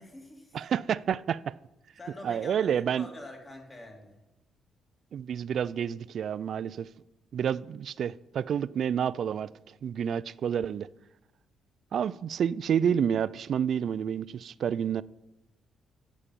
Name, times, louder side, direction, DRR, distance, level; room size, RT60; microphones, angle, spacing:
voice 1, 0.0-0.6 2.0-4.2, left 1 dB, 30° left, 2.4 m, -46 dB
voice 2, 0.5-1.6 2.2-3.1 5.1-6.9 7.3-9.5 9.8-10.9 11.9-15.0, right 8 dB, 60° right, 0.3 m, -29 dB
11.0 x 7.3 x 5.3 m
cardioid pair, 90°, 0 cm